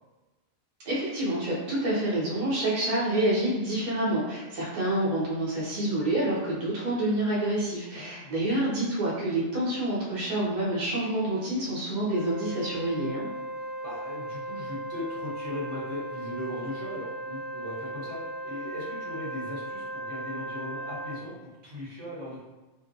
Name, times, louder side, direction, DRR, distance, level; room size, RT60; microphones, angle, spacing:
voice 1, 0.8-13.3, right 1 dB, 40° right, -7 dB, 0.8 m, -28 dB
voice 2, 7.9-8.5 13.8-22.4, left 1 dB, 75° right, -7 dB, 1.2 m, -38 dB
Wind instrument woodwind instrument, 12.1-21.2, right 1 dB, 15° right, 0.6 m, -37 dB
2.6 x 2.2 x 2.5 m, 1.1 s
omnidirectional pair, 1.3 m